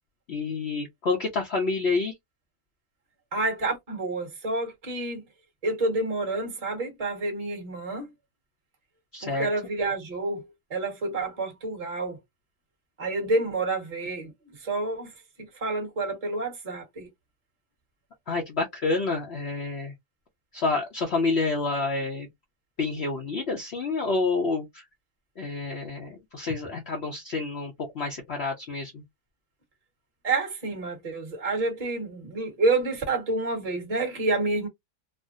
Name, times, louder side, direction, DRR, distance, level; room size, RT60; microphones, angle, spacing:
voice 1, 0.3-2.1 9.1-9.5 18.3-19.9 20.5-22.3 22.8-24.8 25.4-29.0, left 3 dB, 50° left, 0.9 m, -28 dB
voice 2, 3.3-5.2 5.6-8.1 9.2-12.2 13.0-14.3 14.6-15.1 15.6-17.1 30.2-34.7, right 2 dB, 25° right, 1.1 m, -28 dB
3.4 x 2.1 x 2.5 m
omnidirectional pair, 1.6 m